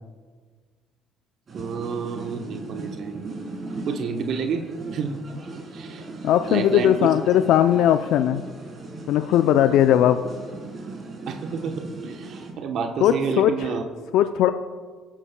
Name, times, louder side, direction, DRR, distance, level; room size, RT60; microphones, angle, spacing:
sound 1, 1.5-12.5, right 3 dB, 45° right, 3.3 m, -38 dB
voice 1, 1.5-3.4 3.8-5.2 5.7-6.1 6.5-7.1 11.3-13.8, right 6 dB, 60° right, 5 dB, 0.9 m, -29 dB
voice 2, 6.2-8.4 9.1-10.2 13.0-13.5 14.1-14.5, left 11 dB, 70° left, 9 dB, 0.4 m, -18 dB
19.5 x 9.9 x 2.2 m, 1.5 s
hypercardioid pair, 60°, 0 cm